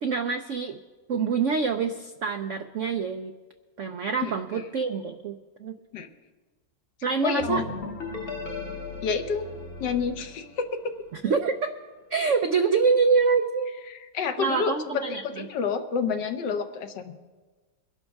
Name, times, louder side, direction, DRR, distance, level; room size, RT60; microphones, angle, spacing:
voice 1, 0.0-0.8 1.1-3.3 3.8-5.7 7.0-7.6 11.1-11.7 12.1-13.8 14.4-15.4, right 5 dB, 75° right, 7 dB, 0.7 m, -26 dB
voice 2, 4.2-4.6 5.9-6.1 7.2-7.6 9.0-9.4 9.8-10.6 13.9-17.1, left 6 dB, 70° left, 7 dB, 1.5 m, -29 dB
sound 1, 7.4-11.1, left 3 dB, 40° left, 1.1 m, -37 dB
23.0 x 11.5 x 3.5 m, 1.3 s
omnidirectional pair, 2.0 m